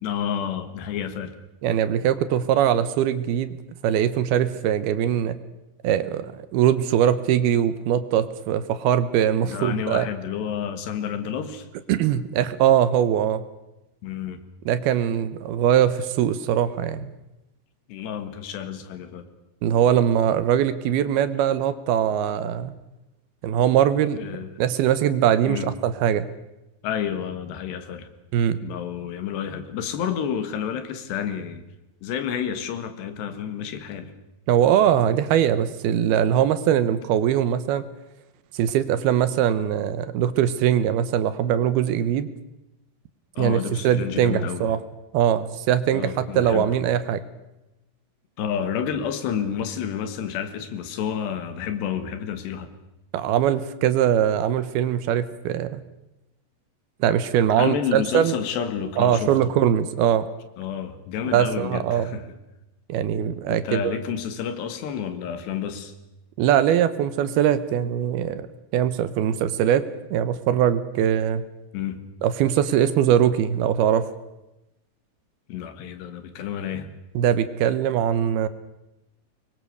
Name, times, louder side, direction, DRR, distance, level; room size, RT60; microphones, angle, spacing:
voice 1, 0.0-1.3 9.4-11.7 14.0-14.4 17.9-19.3 24.2-24.5 25.5-25.7 26.8-28.1 28.6-31.6 32.0-34.1 43.4-44.7 45.9-46.7 48.4-52.7 57.6-59.3 60.6-62.3 63.5-65.9 71.7-72.0 75.5-76.9, left 8 dB, 85° left, 9 dB, 3.9 m, -30 dB
voice 2, 1.6-3.5 3.8-5.4 5.8-10.1 11.9-13.4 14.7-17.1 19.6-22.7 23.4-24.3 24.6-26.3 28.3-28.6 34.5-37.8 38.5-42.3 43.4-44.8 45.1-47.2 53.1-55.8 57.0-58.4 59.0-60.2 61.3-62.2 62.9-63.9 66.4-68.5 68.7-69.8 70.1-71.4 72.2-74.1 77.1-78.5, right 10 dB, 75° right, 13 dB, 2.8 m, -21 dB
24.5 x 22.0 x 6.8 m, 0.95 s
omnidirectional pair, 4.8 m